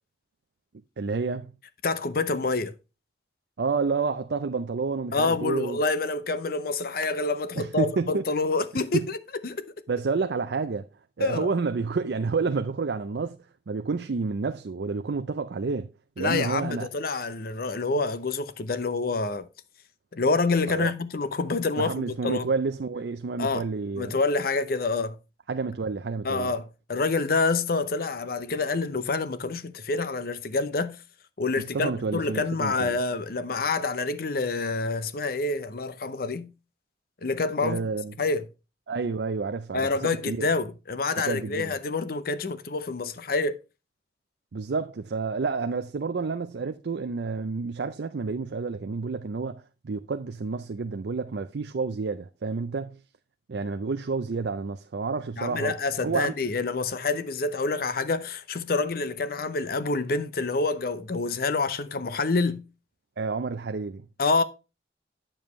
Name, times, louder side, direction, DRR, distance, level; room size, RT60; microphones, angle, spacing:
voice 1, 1.0-1.5 3.6-5.8 7.5-8.2 8.9-9.1 9.9-10.9 11.2-13.4 13.7-15.9 16.2-16.9 20.7-20.9 21.8-24.2 25.5-26.5 31.7-32.9 37.6-38.1 38.9-40.5 41.2-41.7 44.5-53.0 53.5-55.8 56.0-56.3 63.2-64.0, right 4 dB, 70° right, 0.5 m, -29 dB
voice 2, 1.8-2.7 5.1-9.2 9.4-9.7 11.2-11.5 16.2-19.5 20.1-22.5 23.4-23.6 24.0-25.2 26.2-31.0 31.4-36.5 37.2-37.9 38.2-38.5 39.7-43.6 55.4-62.6 64.2-64.4, left 3 dB, 55° left, 0.7 m, -27 dB
8.8 x 7.1 x 3.1 m
head